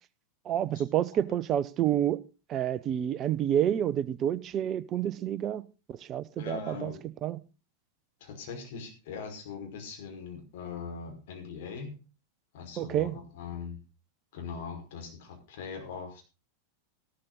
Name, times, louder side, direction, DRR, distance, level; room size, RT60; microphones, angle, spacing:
voice 1, 0.4-2.2 2.5-5.6 5.9-6.9 7.2-7.4 12.8-13.2, right 10 dB, 30° right, 0.8 m, -29 dB
voice 2, 6.4-7.0 8.2-12.0 12.5-13.8 14.3-16.2, left 5 dB, 55° left, 5.5 m, -41 dB
14.0 x 13.0 x 4.1 m
figure-of-eight pair, 90°, 0 cm